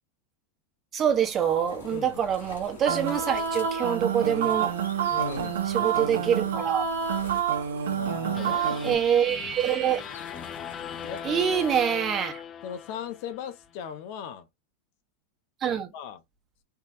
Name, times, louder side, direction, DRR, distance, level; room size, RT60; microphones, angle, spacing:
voice 1, 0.9-4.8 5.7-6.9 8.8-10.0 11.2-12.4 15.6-15.9, right 8 dB, 35° right, 1.2 m, -25 dB
sound 1, 1.4-11.8, left 4 dB, 90° left, 1.6 m, -46 dB
voice 2, 1.9-2.2 5.1-6.7 8.0-9.1 9.3-9.6 11.1-11.2 11.5-11.6 12.6-14.5 15.7-16.2, left 8 dB, 60° left, 0.9 m, -39 dB
sound 2, 2.9-8.9, right 7 dB, 80° right, 1.1 m, -28 dB
sound 3, 8.3-13.6, left 8 dB, 30° left, 0.6 m, -39 dB
4.7 x 3.4 x 2.8 m
hypercardioid pair, 105°, 0 cm